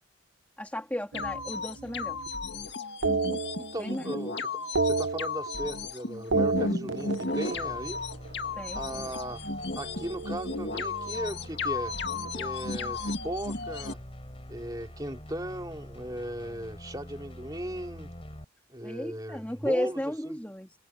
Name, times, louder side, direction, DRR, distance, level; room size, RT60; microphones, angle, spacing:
voice 1, 0.6-2.2 3.8-4.0 8.6-9.1 18.8-20.7, equal, 10° left, 2.1 m, -34 dB
sound 1, 1.1-13.9, left 3 dB, 55° left, 2.3 m, -34 dB
sound 2, 1.1-2.4 3.0-4.2 4.5-5.9 6.2-8.5 9.7-11.5, right 4 dB, 80° right, 0.9 m, -32 dB
voice 2, 3.6-4.5 4.8-8.0 8.7-9.4 9.8-12.0 12.3-14.0 14.5-18.1 18.7-20.0 20.2-20.4, right 1 dB, 20° right, 3.0 m, -37 dB
sound 3, 7.5-18.4, equal, 30° left, 5.1 m, -45 dB
head